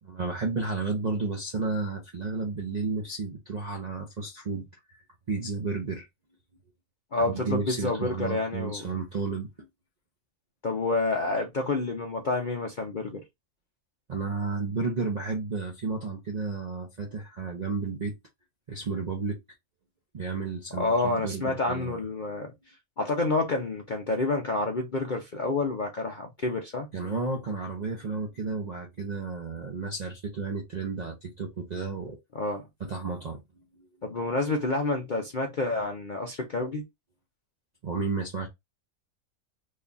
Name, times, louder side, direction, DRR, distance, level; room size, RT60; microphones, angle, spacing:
voice 1, 0.0-5.0 5.3-6.1 7.2-9.7 14.1-18.1 18.7-19.4 20.1-22.0 26.9-32.2 32.8-33.4 33.8-33.9 37.8-38.5, right 4 dB, 50° right, 0.5 m, -32 dB
voice 2, 7.1-8.8 10.6-13.2 20.8-22.5 23.0-26.9 32.3-32.7 34.0-36.8, left 2 dB, 55° left, 0.5 m, -28 dB
3.1 x 2.3 x 3.8 m
omnidirectional pair, 1.6 m